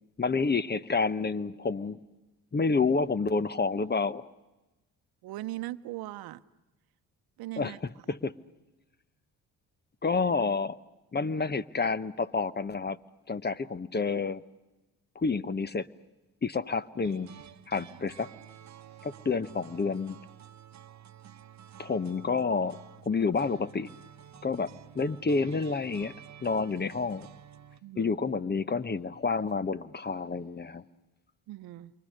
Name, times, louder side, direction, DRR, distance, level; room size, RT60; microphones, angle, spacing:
voice 1, 0.2-2.0 2.5-4.3 7.6-7.7 8.1-8.3 10.0-10.8 11.1-13.0 13.3-14.4 15.1-15.9 16.4-17.3 17.7-18.3 19.0-20.2 21.8-22.8 23.1-23.9 24.4-26.1 26.4-27.3 28.0-30.8, left 4 dB, 30° left, 1.0 m, -29 dB
voice 2, 5.2-6.4 7.4-7.8 27.8-28.2 31.5-31.9, right 15 dB, 85° right, 0.9 m, -39 dB
sound 1, 17.0-27.8, right 9 dB, 50° right, 1.0 m, -51 dB
28.5 x 24.5 x 6.6 m
supercardioid pair, 65°, 36 cm